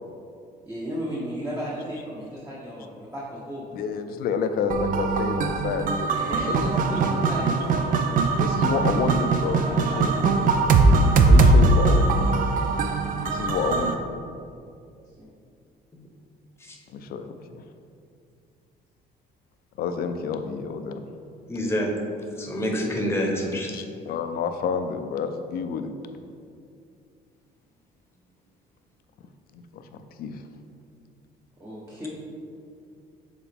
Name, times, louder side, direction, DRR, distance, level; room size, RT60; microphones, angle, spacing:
voice 1, 0.7-3.6 6.1-7.9 9.6-10.0 10.3-10.6 15.2-15.3 31.6-32.1, equal, 15° right, -7 dB, 1.1 m, -35 dB
voice 2, 3.7-6.7 8.4-10.2 11.3-12.5 13.2-14.0 16.9-17.6 19.8-21.0 23.7-25.9 29.5-30.4, left 6 dB, 65° left, 7 dB, 0.5 m, -29 dB
sound 1, 4.7-13.9, right 3 dB, 55° right, 0.5 m, -21 dB
voice 3, 21.5-21.9 22.4-23.7, equal, 15° left, 0 dB, 1.0 m, -27 dB
7.1 x 4.0 x 3.6 m, 2.4 s
cardioid pair, 110°, 17 cm